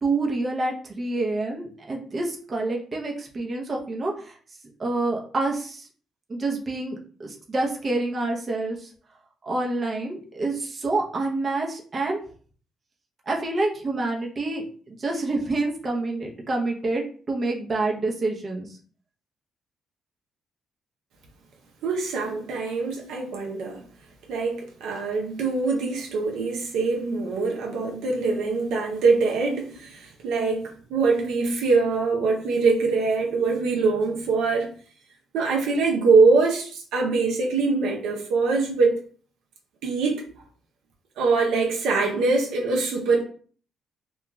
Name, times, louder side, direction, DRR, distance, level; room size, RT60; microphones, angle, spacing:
voice 1, 0.0-4.4 4.8-5.9 6.3-8.9 9.4-12.2 13.3-17.0 17.3-18.7, right 2 dB, 35° right, 0.7 m, -27 dB
voice 2, 21.8-23.8 24.3-34.7 35.3-39.0 39.8-40.2 41.2-43.2, right 4 dB, 85° right, 0.5 m, -23 dB
2.3 x 2.3 x 3.0 m
cardioid pair, 90°, 0 cm